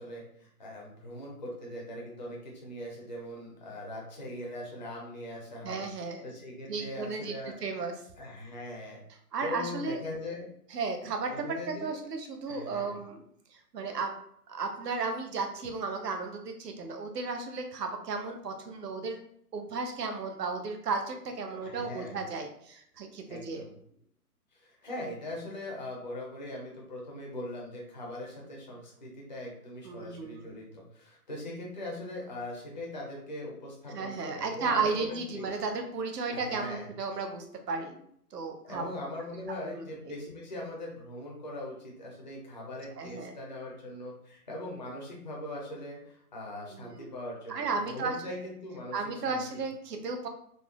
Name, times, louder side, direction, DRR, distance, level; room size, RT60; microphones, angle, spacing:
voice 1, 0.0-7.6 8.2-9.0 9.4-10.5 11.3-12.0 12.5-12.9 21.6-22.2 23.3-23.7 24.5-35.5 36.3-36.9 38.6-49.6, left 1 dB, 35° left, -2 dB, 0.4 m, -41 dB
voice 2, 5.6-6.3 6.7-7.3 7.6-7.9 9.3-10.0 10.7-13.2 13.7-14.1 14.5-19.2 19.5-23.6 29.8-30.5 33.9-38.0 38.3-38.8 39.6-39.7 43.0-43.3 46.7-47.1 47.5-48.2 48.9-50.3, right 4 dB, 80° right, 5 dB, 0.7 m, -34 dB
3.6 x 2.0 x 2.3 m, 0.68 s
hypercardioid pair, 145°, 47 cm